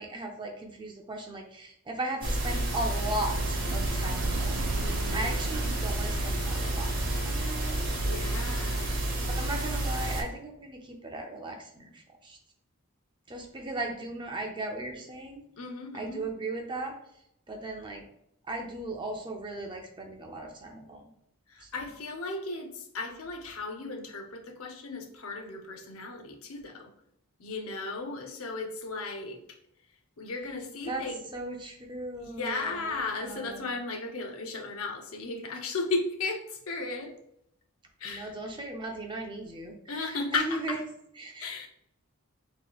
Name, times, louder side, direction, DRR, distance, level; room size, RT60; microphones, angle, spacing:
voice 1, 0.0-4.8 5.1-7.8 9.3-12.4 13.3-15.4 15.9-17.0 17.5-18.0 18.5-21.0 21.6-21.7 30.9-31.0 31.3-33.6 38.0-40.8 41.2-41.5, right 2 dB, 20° right, 2 dB, 0.5 m, -37 dB
sound 1, 2.2-10.2, right 1 dB, 40° right, 1.0 m, -30 dB
sound 2, 2.7-7.4, right 3 dB, 90° right, 0.4 m, -38 dB
voice 2, 4.8-5.3 8.0-8.9 15.6-16.2 21.5-26.9 27.4-29.4 30.2-31.2 32.2-37.1 38.0-38.3 39.9-40.8 41.4-41.7, left 3 dB, 75° left, 3 dB, 0.7 m, -35 dB
4.8 x 2.9 x 2.3 m, 0.75 s
head